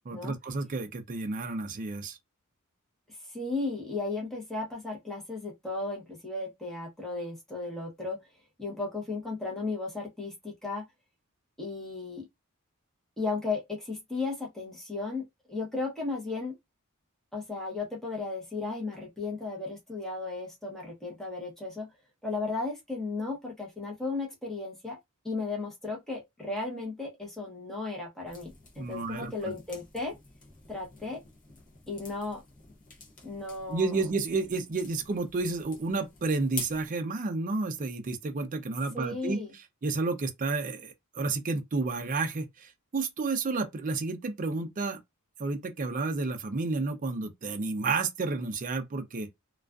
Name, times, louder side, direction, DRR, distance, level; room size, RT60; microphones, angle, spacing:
voice 1, 0.1-2.2 28.8-29.3 33.7-39.4 39.8-45.0 45.4-49.3, right 3 dB, 35° right, 0.4 m, -31 dB
voice 2, 3.1-8.2 8.6-10.8 11.6-12.3 13.2-15.2 15.5-16.5 17.3-21.9 22.2-25.0 25.2-28.5 28.8-30.1 30.7-31.2 31.9-32.4 33.2-34.0 38.9-39.5, left 3 dB, ahead, 0.8 m, -35 dB
sound 1, 28.3-36.9, left 4 dB, 40° left, 0.6 m, -47 dB
2.3 x 2.3 x 2.3 m
head